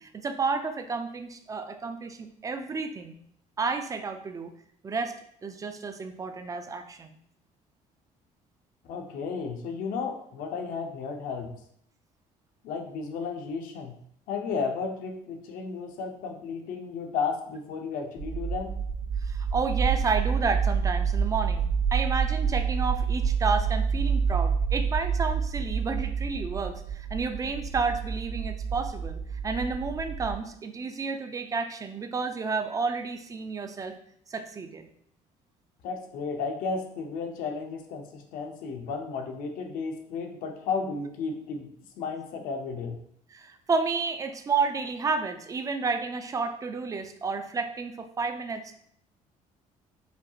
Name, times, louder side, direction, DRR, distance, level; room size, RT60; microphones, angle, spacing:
voice 1, 0.0-3.2 3.6-4.5 4.8-5.1 5.4-7.1 19.2-34.0 34.3-34.9 43.3-48.7, right 4 dB, 25° right, 7 dB, 0.4 m, -31 dB
voice 2, 8.9-11.5 12.6-13.9 14.3-18.8 35.8-41.7 42.0-43.0, left 5 dB, 80° left, 4 dB, 0.7 m, -33 dB
sound 1, 18.2-30.3, right 6 dB, 45° right, 1.2 m, -28 dB
5.1 x 2.8 x 2.4 m, 0.68 s
cardioid pair, 115°, 14 cm